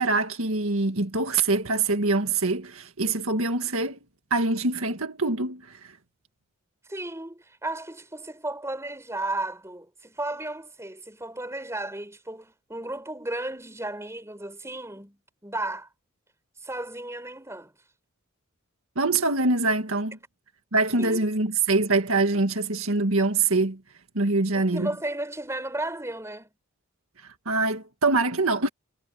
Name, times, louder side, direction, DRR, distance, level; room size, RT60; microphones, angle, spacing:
voice 1, 0.0-4.0 4.3-6.0 19.0-20.2 20.7-23.8 24.2-24.9 27.2-28.7, right 3 dB, 75° right, 1.9 m, -24 dB
voice 2, 6.9-15.9 16.6-17.7 21.0-21.3 24.5-26.5, right 2 dB, 15° right, 5.6 m, -34 dB
head